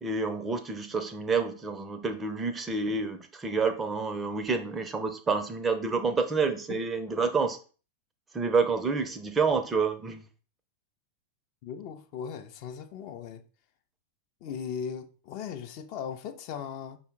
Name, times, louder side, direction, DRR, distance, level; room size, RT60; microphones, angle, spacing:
voice 1, 0.0-7.6 8.3-10.2, right 4 dB, 15° right, 0.5 m, -28 dB
voice 2, 11.6-13.4 14.4-17.0, left 7 dB, 45° left, 0.5 m, -38 dB
5.5 x 2.0 x 3.6 m
figure-of-eight pair, 90°, 0 cm